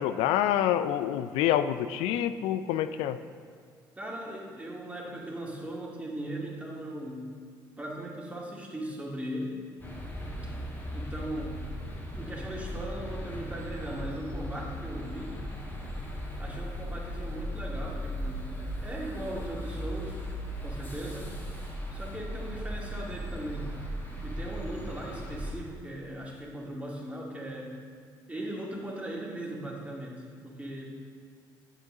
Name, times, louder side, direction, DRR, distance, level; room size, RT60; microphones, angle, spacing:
voice 1, 0.0-3.2, left 11 dB, 80° left, 12 dB, 0.4 m, -27 dB
voice 2, 4.0-7.3 7.8-9.6 10.4-10.6 10.9-11.6 12.1-15.5 16.4-20.2 20.6-21.3 21.9-23.8 24.2-27.7 28.3-30.9, right 1 dB, 15° right, -3 dB, 2.1 m, -38 dB
sound 1, 9.8-25.5, equal, 20° left, 1.8 m, -37 dB
8.7 x 6.8 x 3.8 m, 2.1 s
supercardioid pair, 65°, 10 cm